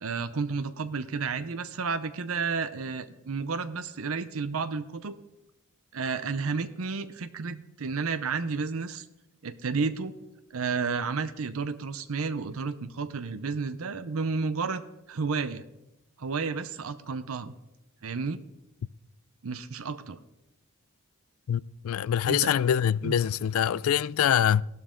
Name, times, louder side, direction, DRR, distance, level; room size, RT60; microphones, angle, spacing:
voice 1, 0.0-5.2 5.9-9.0 9.4-10.1 10.5-14.8 15.1-15.6 16.2-17.5 18.0-18.4 19.4-20.2 22.2-22.5 23.0-23.1, right 4 dB, 70° right, 0.7 m, -31 dB
voice 2, 21.5-24.6, left 9 dB, 70° left, 0.3 m, -24 dB
16.0 x 12.5 x 3.8 m
head